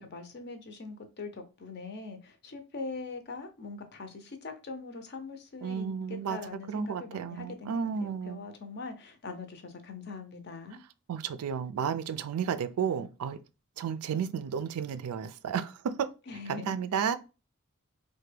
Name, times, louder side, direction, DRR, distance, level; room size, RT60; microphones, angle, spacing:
voice 1, 0.0-10.8 16.3-16.8, left 3 dB, 50° left, 0.6 m, -42 dB
voice 2, 5.6-6.4 6.7-8.4 11.1-13.4 13.8-16.1 16.5-17.2, right 7 dB, 90° right, 0.4 m, -32 dB
3.3 x 2.2 x 3.2 m
head